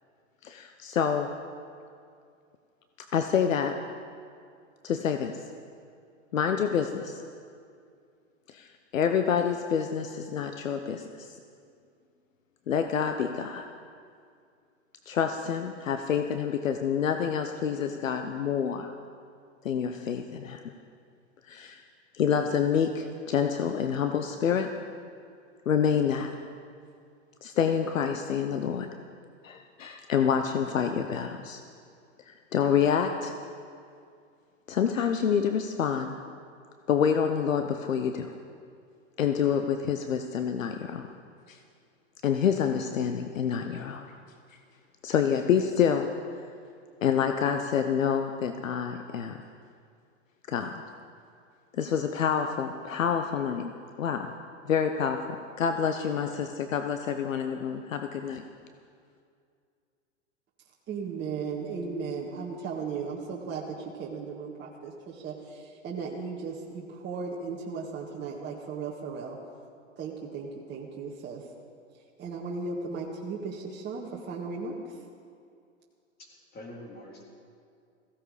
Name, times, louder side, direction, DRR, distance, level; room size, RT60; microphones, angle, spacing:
voice 1, 0.4-1.3 3.1-3.8 4.8-5.4 6.3-7.2 8.5-11.3 12.7-13.7 15.1-18.9 19.6-20.7 21.4-21.8 22.1-24.7 25.7-26.3 27.4-28.9 29.4-31.6 32.3-33.3 34.7-36.1 36.9-38.3 39.2-41.1 41.5-41.6 42.2-44.1 45.0-46.1 47.0-49.4 50.5-50.8 51.7-53.7 54.0-54.3 54.7-58.4, left 7 dB, 80° left, 7 dB, 0.9 m, -27 dB
voice 2, 60.9-69.4 70.0-71.4 72.2-74.8, right 5 dB, 25° right, -3 dB, 1.8 m, -36 dB
voice 3, 76.2-77.2, left 1 dB, 25° left, -1 dB, 3.7 m, -45 dB
17.0 x 16.0 x 5.0 m, 2.3 s
hypercardioid pair, 110°, 39 cm